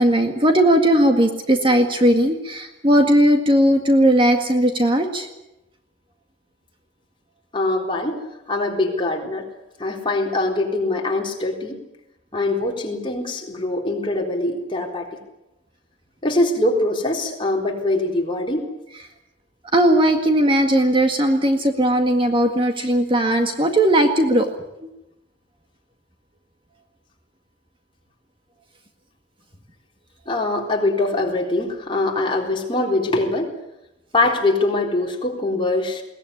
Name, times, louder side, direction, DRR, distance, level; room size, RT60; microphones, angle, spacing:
voice 1, 0.0-5.3 19.7-24.5, right 1 dB, 25° right, 5 dB, 1.9 m, -17 dB
voice 2, 7.5-9.5 9.8-11.8 12.3-15.1 16.2-18.7 30.3-33.5 34.1-36.0, left 2 dB, 25° left, 0 dB, 3.9 m, -23 dB
21.5 x 19.0 x 9.8 m, 0.92 s
head